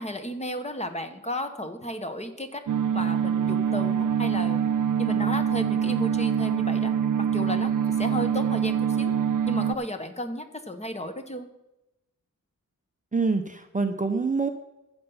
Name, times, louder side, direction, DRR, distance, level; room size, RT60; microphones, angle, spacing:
voice 1, 0.0-2.6 2.9-4.7 5.0-9.1 9.5-11.5, left 1 dB, 20° left, 7 dB, 1.1 m, -34 dB
sound 1, 2.7-9.8, right 8 dB, 70° right, 0.5 m, -25 dB
voice 2, 13.1-14.5, right 4 dB, 25° right, 7 dB, 0.6 m, -25 dB
14.5 x 7.0 x 5.5 m, 0.93 s
wide cardioid pair, 100°, 33 cm